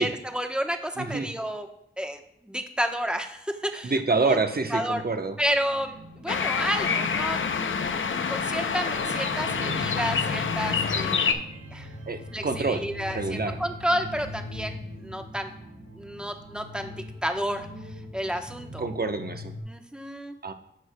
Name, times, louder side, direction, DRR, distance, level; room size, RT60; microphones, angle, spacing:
voice 1, 0.0-1.7 2.0-4.4 4.7-5.0 5.4-7.5 8.0-11.4 11.7-11.9 12.3-15.5 15.9-17.7 18.1-18.9 19.7-20.4, equal, 5° right, 5 dB, 1.0 m, -31 dB
voice 2, 1.0-1.3 3.8-5.4 12.1-12.8 13.1-13.6 18.8-19.5 20.4-20.5, right 3 dB, 50° right, 6 dB, 0.9 m, -27 dB
sound 1, 5.1-19.6, left 1 dB, 65° right, 2.8 m, -39 dB
sound 2, 6.3-11.3, left 6 dB, 70° left, 0.6 m, -27 dB
10.5 x 6.3 x 2.2 m, 0.79 s
cardioid pair, 40°, 21 cm